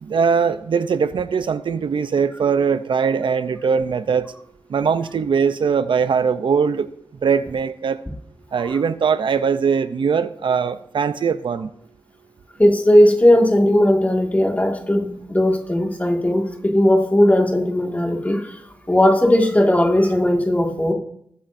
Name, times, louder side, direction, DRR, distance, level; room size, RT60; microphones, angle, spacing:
voice 1, 0.0-4.3 4.7-6.9 7.2-8.0 8.5-11.7, right 6 dB, 75° right, 12 dB, 0.5 m, -21 dB
voice 2, 12.6-18.6 18.9-20.9, left 1 dB, 20° left, 2 dB, 1.9 m, -17 dB
20.0 x 8.5 x 2.6 m, 0.69 s
wide cardioid pair, 75°, 8 cm